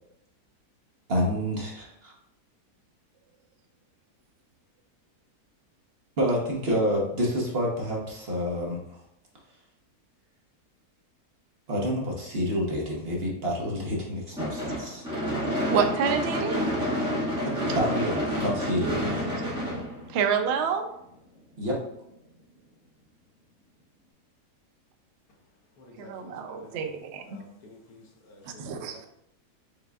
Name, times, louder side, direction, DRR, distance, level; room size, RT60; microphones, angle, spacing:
voice 1, 1.1-2.1 6.2-9.0 11.7-15.1 17.4-19.1 21.6-21.8, equal, 45° right, -2 dB, 1.0 m, -28 dB
Gunshot gunfire / Fireworks, 14.4-20.6, equal, 5° right, 1.4 m, -29 dB
voice 2, 15.7-16.6 20.1-20.8 26.0-27.4 28.4-29.1, right 7 dB, 80° right, 5 dB, 0.6 m, -28 dB
voice 3, 25.8-26.9 27.3-29.1, left 1 dB, 70° left, 1 dB, 1.2 m, -51 dB
5.0 x 3.5 x 2.3 m, 0.78 s
omnidirectional pair, 1.7 m